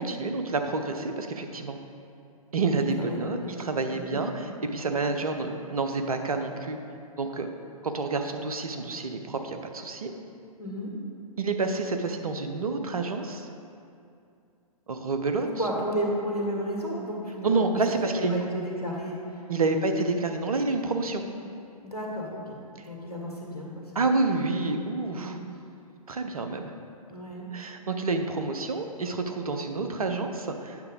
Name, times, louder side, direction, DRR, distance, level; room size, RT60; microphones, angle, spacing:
voice 1, 0.0-1.8 2.5-6.8 7.2-7.5 7.8-10.1 11.4-13.5 14.9-15.5 17.4-18.3 19.5-21.2 23.9-25.4 26.1-26.7 27.5-30.8, right 3 dB, 70° right, 6 dB, 0.8 m, -28 dB
voice 2, 3.0-3.6 3.9-4.2 10.6-10.9 15.6-17.7 18.0-19.4 21.8-22.6 22.8-24.0 24.5-24.6 25.2-25.3 27.1-27.5, equal, 90° left, -2 dB, 1.8 m, -33 dB
8.7 x 6.7 x 3.8 m, 2.5 s
figure-of-eight pair, 115°, 19 cm